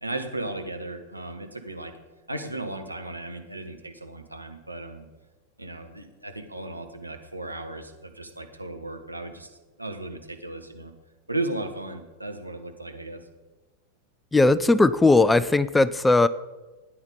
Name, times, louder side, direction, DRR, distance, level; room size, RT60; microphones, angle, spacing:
voice 1, 0.0-1.9 2.3-5.1 5.6-10.9 11.3-13.2, right 2 dB, 85° right, 4 dB, 1.3 m, -35 dB
voice 2, 14.3-16.3, left 2 dB, 10° left, 16 dB, 0.4 m, -18 dB
13.0 x 9.5 x 5.3 m, 1.2 s
figure-of-eight pair, 90°, 0 cm